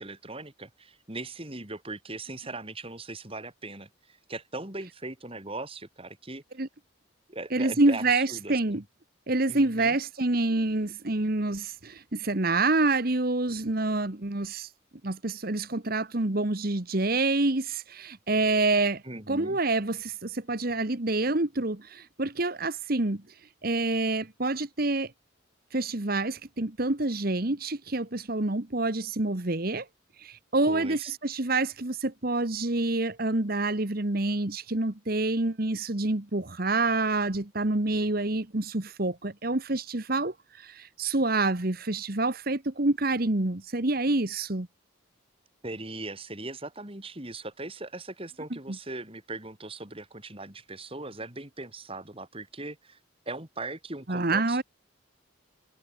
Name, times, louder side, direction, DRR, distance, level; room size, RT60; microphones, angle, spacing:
voice 1, 0.0-6.4 7.3-8.8 9.5-10.0 19.0-19.6 30.7-31.1 45.6-53.0 53.2-54.6, right 2 dB, 25° right, 3.3 m, -39 dB
voice 2, 7.5-8.8 9.3-14.7 15.0-23.2 23.6-25.1 25.7-29.9 30.2-44.7 54.1-54.6, right 2 dB, 45° right, 1.4 m, -27 dB
head